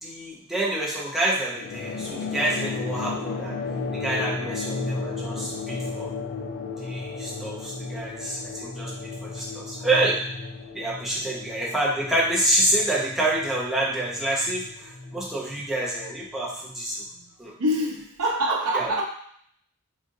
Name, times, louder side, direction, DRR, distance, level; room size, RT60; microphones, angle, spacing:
voice 1, 0.0-3.6 3.9-6.1 6.8-8.9 9.2-10.2 10.7-17.0 17.4-17.5 18.7-18.9, right 1 dB, ahead, -5 dB, 0.6 m, -27 dB
sound 1, 1.5-16.4, left 4 dB, 45° left, 0.3 m, -34 dB
voice 2, 17.6-19.0, right 1 dB, 80° right, 0 dB, 0.7 m, -26 dB
3.8 x 2.5 x 2.6 m, 0.65 s
head